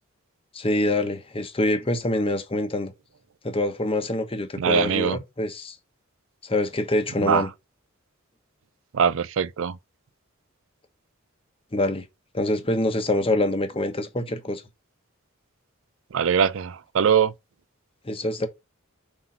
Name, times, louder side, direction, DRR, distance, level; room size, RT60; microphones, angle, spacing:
voice 1, 0.5-2.9 3.4-5.8 6.4-7.5 11.7-12.0 12.3-14.6 18.0-18.5, left 1 dB, 25° left, 1.0 m, -25 dB
voice 2, 4.6-5.2 7.2-7.5 8.9-9.8 16.1-17.3, right 7 dB, 65° right, 0.4 m, -22 dB
5.8 x 3.9 x 5.6 m
head